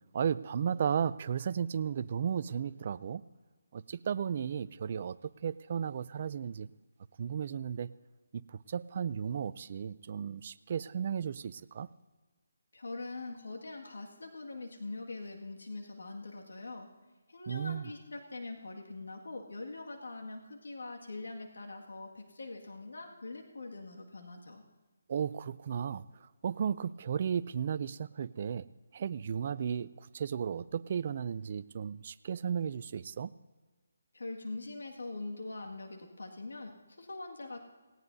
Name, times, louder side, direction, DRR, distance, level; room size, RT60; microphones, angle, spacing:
voice 1, 0.1-3.2 3.7-5.2 5.4-6.7 7.2-7.9 8.5-11.9 17.5-17.9 25.1-26.0 26.4-28.7 28.9-33.3, right 7 dB, 35° right, 16 dB, 0.4 m, -34 dB
voice 2, 12.7-16.9 17.3-24.6 34.1-37.6, left 2 dB, 85° left, 1 dB, 2.0 m, -43 dB
18.5 x 18.0 x 2.7 m, 1.3 s
hypercardioid pair, 170°, 0 cm